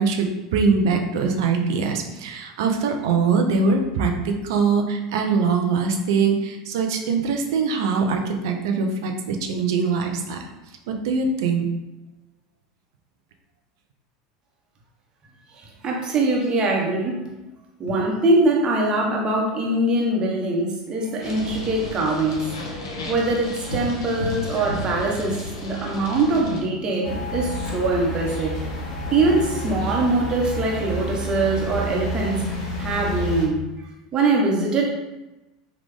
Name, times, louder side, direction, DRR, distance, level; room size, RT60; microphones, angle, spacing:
voice 1, 0.0-10.5 10.9-11.7, right 4 dB, 65° right, 4 dB, 0.5 m, -22 dB
voice 2, 15.5-17.2 17.8-22.5 23.1-28.6 29.1-32.4 32.8-33.6 34.1-34.9, right 2 dB, 35° right, -2 dB, 1.0 m, -22 dB
sound 1, 21.2-26.6, left 2 dB, 70° left, 0.8 m, -33 dB
sound 2, 27.0-33.5, left 1 dB, 55° left, 1.2 m, -29 dB
3.2 x 2.4 x 3.5 m, 1.0 s
hypercardioid pair, 80°, 2 cm